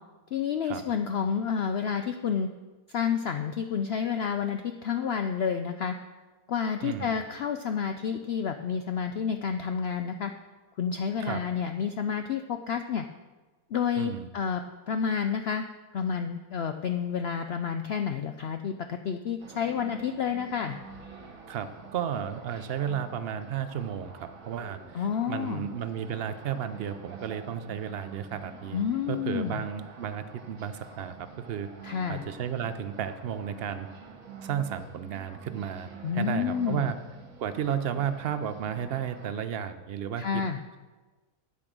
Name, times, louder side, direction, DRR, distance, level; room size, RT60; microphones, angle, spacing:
voice 1, 0.3-2.5 2.9-6.0 6.5-10.3 10.8-13.1 13.7-15.7 15.9-20.8 24.9-25.7 28.7-29.6 31.8-32.2 36.0-36.9 40.2-40.6, left 7 dB, 90° left, 7 dB, 0.5 m, -30 dB
voice 2, 6.8-7.1 11.2-11.4 13.9-14.3 21.5-28.8 29.1-31.7 32.1-33.9 34.4-37.0 37.4-40.4, right 8 dB, 75° right, 10 dB, 0.5 m, -33 dB
sound 1, 19.4-39.3, right 5 dB, 60° right, 1.7 m, -47 dB
8.7 x 8.5 x 6.1 m, 1.2 s
omnidirectional pair, 1.7 m